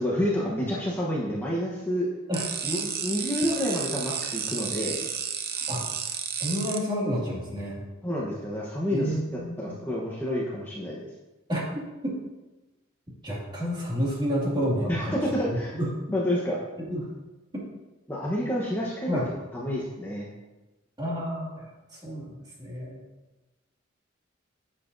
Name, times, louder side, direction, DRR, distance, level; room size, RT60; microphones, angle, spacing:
voice 1, 0.0-2.1 2.6-5.1 8.0-9.1 9.6-11.1 14.9-15.7 16.1-16.6 18.1-19.3 19.5-20.3, equal, 10° left, -5 dB, 1.0 m, -29 dB
sound 1, 2.3-6.8, right 8 dB, 50° right, 0.7 m, -32 dB
voice 2, 5.7-7.8 8.9-9.8 11.5-12.2 13.2-15.2 15.5-15.9 16.8-17.1 19.1-19.3 21.0-21.7 21.9-23.0, equal, 20° right, -5 dB, 2.3 m, -30 dB
9.9 x 8.1 x 2.7 m, 1.1 s
head